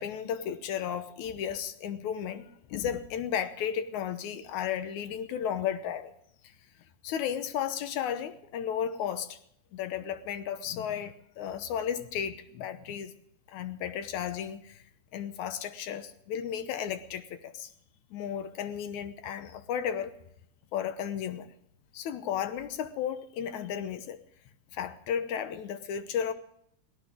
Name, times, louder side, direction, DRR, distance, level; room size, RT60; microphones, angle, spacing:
voice 1, 0.0-6.1 7.0-9.4 9.7-13.1 13.5-14.8 15.1-17.7 18.1-20.2 20.7-21.5 21.9-24.2 24.7-26.3, left 8 dB, 75° left, 2.3 m, -34 dB
18.0 x 17.0 x 3.7 m
omnidirectional pair, 3.6 m